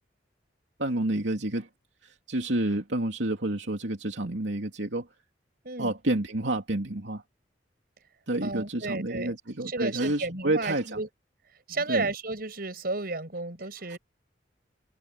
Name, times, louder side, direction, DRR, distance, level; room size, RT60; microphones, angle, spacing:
voice 1, 0.8-1.7 2.0-5.1 5.8-7.2 8.3-11.0 11.9-12.1 13.9-14.0, right 1 dB, 85° right, 2.8 m, -29 dB
voice 2, 5.6-6.0 8.4-9.4 9.6-11.1 11.7-14.0, right 3 dB, 55° right, 6.3 m, -32 dB
head